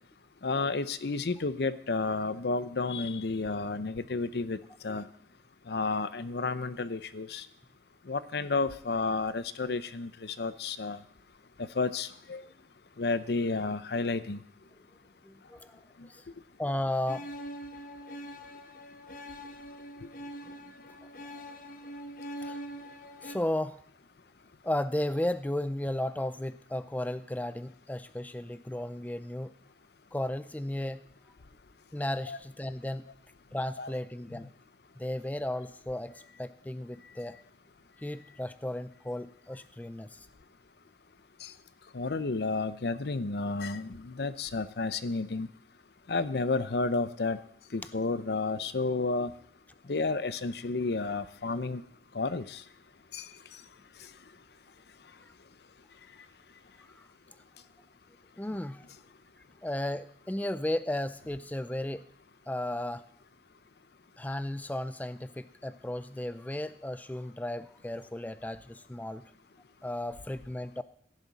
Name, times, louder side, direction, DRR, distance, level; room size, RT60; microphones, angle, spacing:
voice 1, 0.4-4.6 4.8-5.0 5.7-7.4 8.1-11.0 11.8-12.4 13.0-14.4 32.3-32.4 33.8-33.9 34.3-34.4 41.4-41.5 41.9-45.5 46.1-47.4 47.7-49.3 49.9-51.8 52.1-52.6 53.1-53.3, left 3 dB, 70° left, 14 dB, 0.6 m, -31 dB
voice 2, 15.2-15.8 16.1-16.2 16.6-17.3 20.4-20.5 20.9-21.0 22.4-22.6 23.2-23.8 24.6-29.5 30.1-31.0 31.9-33.1 33.5-34.5 35.0-37.4 38.0-40.3 57.0-57.1 58.4-58.9 59.6-62.0 62.5-63.0 64.2-69.2 69.8-70.8, left 1 dB, 10° left, 13 dB, 0.4 m, -34 dB
sound 1, 17.1-23.4, equal, 50° left, 1.0 m, -43 dB
17.0 x 10.5 x 4.1 m, 0.64 s
head